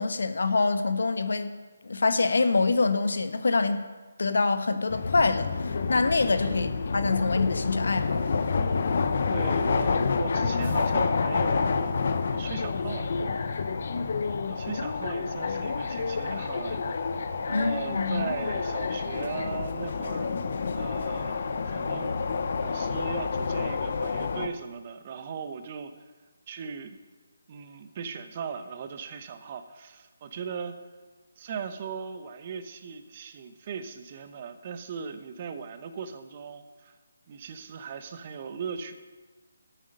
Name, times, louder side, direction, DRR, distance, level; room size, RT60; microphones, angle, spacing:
voice 1, 0.0-1.5 1.8-3.8 4.2-8.3 17.5-18.3, left 3 dB, 75° left, 9 dB, 1.2 m, -25 dB
sound 1, 4.9-24.5, left 4 dB, 55° left, 0.8 m, -28 dB
voice 2, 9.3-11.9 12.3-13.8 14.5-17.0 17.5-20.3 20.8-22.2 22.6-25.9 26.5-27.0 27.5-30.8 31.4-37.0 37.3-38.9, right 6 dB, 35° right, 10 dB, 1.0 m, -38 dB
12.0 x 8.8 x 5.4 m, 1.3 s
figure-of-eight pair, 155°, 0 cm